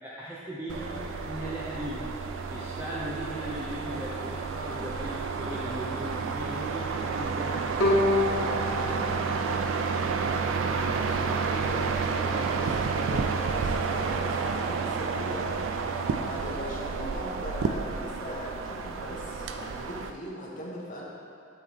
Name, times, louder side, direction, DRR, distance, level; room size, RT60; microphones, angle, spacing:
voice 1, 0.0-2.1 2.5-8.6, equal, 10° right, -7 dB, 0.5 m, -38 dB
sound 1, 0.7-20.1, right 5 dB, 85° right, 0.3 m, -30 dB
Bowed string instrument, 7.8-10.9, left 2 dB, 80° left, 1.0 m, -29 dB
voice 2, 11.0-15.7 16.2-21.0, left 1 dB, 45° left, -3 dB, 1.0 m, -39 dB
8.0 x 3.7 x 3.4 m, 2.4 s
head